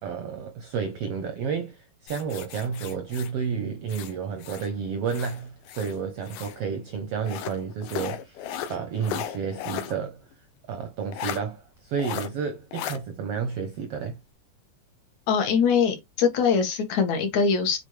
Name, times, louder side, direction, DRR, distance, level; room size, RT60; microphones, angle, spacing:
voice 1, 0.0-8.4 8.7-10.2 10.7-14.2, right 6 dB, 75° right, 1.4 m, -31 dB
sound 1, 2.1-4.7 5.1-6.6 7.2-10.0 10.3-10.4 11.1-11.4 12.0-12.3 12.7-13.0, left 10 dB, 85° left, 2.6 m, -36 dB
voice 2, 15.3-17.8, left 6 dB, 65° left, 2.8 m, -22 dB
7.3 x 4.3 x 3.2 m
omnidirectional pair, 3.7 m